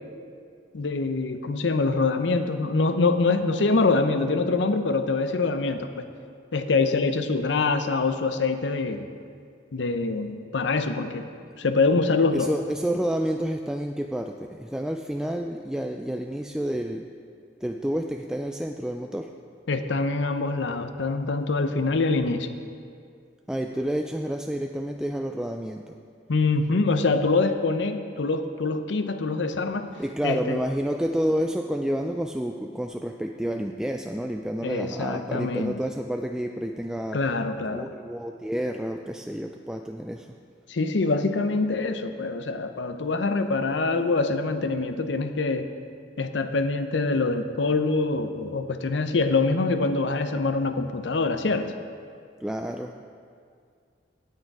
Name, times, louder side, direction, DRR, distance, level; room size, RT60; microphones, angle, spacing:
voice 1, 0.7-6.0 6.5-9.1 9.7-11.3 11.6-12.5 19.7-22.5 26.3-29.9 30.2-30.6 34.6-35.7 37.1-37.8 40.7-45.7 46.2-51.7, left 3 dB, 75° left, 9 dB, 0.6 m, -25 dB
voice 2, 12.3-17.1 17.6-19.4 23.5-26.0 30.0-37.2 37.6-40.3 52.4-53.1, equal, 5° right, 4 dB, 0.3 m, -29 dB
17.5 x 6.6 x 4.7 m, 2.2 s
head